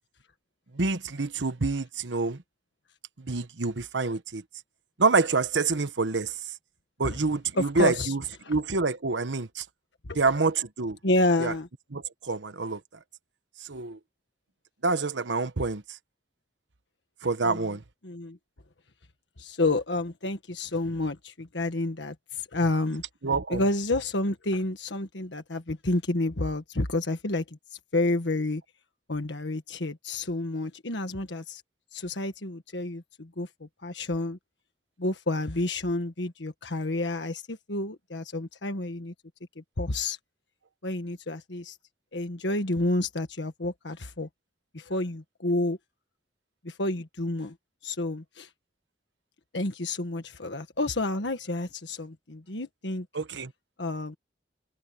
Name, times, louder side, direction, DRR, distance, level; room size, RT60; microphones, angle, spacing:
voice 1, 0.7-2.4 3.2-4.4 5.0-6.4 7.0-8.2 8.5-9.6 10.1-11.0 11.4-11.5 11.9-12.8 13.6-14.0 14.8-16.0 17.2-17.8 23.2-23.6 53.1-53.5, right 3 dB, 90° right, 1.1 m, -27 dB
voice 2, 7.6-8.1 8.4-8.6 10.1-10.2 11.0-11.7 17.4-17.7 18.0-18.4 19.4-23.0 23.5-27.4 27.9-28.6 29.1-31.6 31.9-34.4 35.0-39.1 39.8-40.2 40.8-41.8 42.1-44.3 44.7-45.8 46.6-47.5 47.8-48.5 49.5-53.1 53.8-54.2, left 2 dB, 85° left, 1.6 m, -29 dB
head